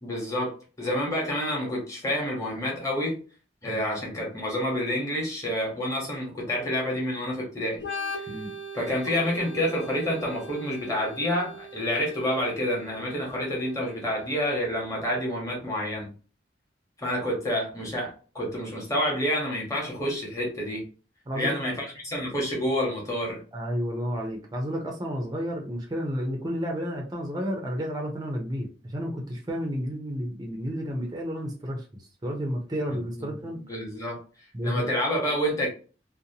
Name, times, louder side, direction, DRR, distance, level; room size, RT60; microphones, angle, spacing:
voice 1, 0.0-3.2 3.6-7.8 8.2-8.3 8.7-16.1 17.0-20.8 21.3-23.4 33.2-33.3 33.7-34.2 34.6-35.7, equal, 20° left, -2 dB, 1.0 m, -28 dB
Organ, 7.8-15.3, equal, 80° left, 1.0 m, -41 dB
voice 2, 21.3-21.7 23.5-31.8 32.2-33.6 34.5-34.8, equal, 20° right, 1 dB, 0.5 m, -31 dB
2.7 x 2.2 x 2.7 m, 0.37 s
head